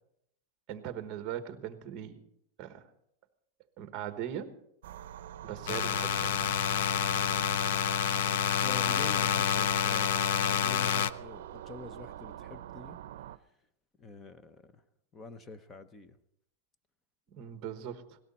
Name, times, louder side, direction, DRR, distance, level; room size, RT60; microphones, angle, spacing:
voice 1, 0.7-2.2 2.6-2.9 3.8-4.5 5.4-6.7 17.3-18.2, right 10 dB, 30° right, 9 dB, 1.2 m, -40 dB
sound 1, 4.8-13.4, right 11 dB, 70° right, 0.6 m, -45 dB
sound 2, 5.7-11.1, left 9 dB, 65° left, 0.5 m, -28 dB
voice 2, 8.6-13.0 14.0-14.8 15.1-16.2, left 3 dB, 15° left, 12 dB, 0.6 m, -47 dB
18.0 x 16.5 x 4.2 m, 0.76 s
supercardioid pair, 175°, 0 cm